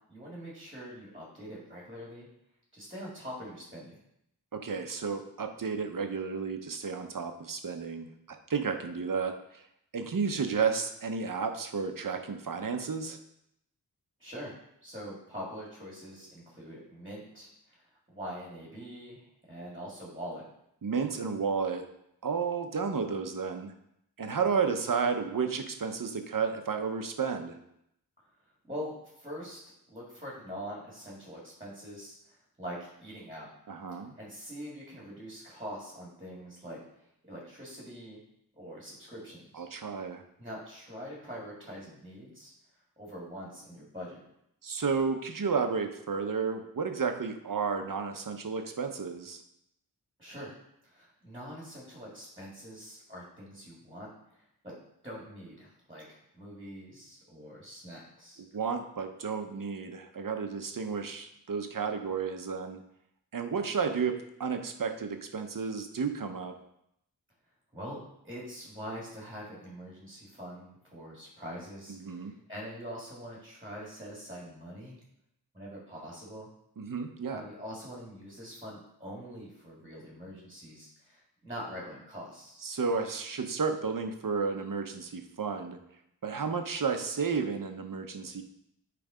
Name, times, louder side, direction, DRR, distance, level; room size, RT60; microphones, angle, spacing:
voice 1, 0.1-2.3 2.7-4.0 14.2-14.5 14.8-20.4 28.6-29.6 29.9-33.5 34.2-36.8 37.3-38.2 38.5-39.6 40.4-42.5 43.0-44.2 50.2-50.5 50.8-54.7 55.0-58.4 67.7-68.0 68.2-75.0 75.5-76.5 77.3-82.7, equal, 15° right, -5 dB, 2.0 m, -44 dB
voice 2, 4.5-8.1 8.5-9.6 9.9-13.2 20.8-21.9 22.2-23.7 24.2-27.6 33.7-34.1 39.5-40.2 44.6-49.4 58.5-62.8 63.3-64.1 64.4-66.5 71.9-72.3 76.8-77.4 82.6-85.8 86.2-88.4, right 5 dB, 55° right, 6 dB, 0.8 m, -32 dB
8.9 x 3.4 x 5.0 m, 0.77 s
wide cardioid pair, 95°, 39 cm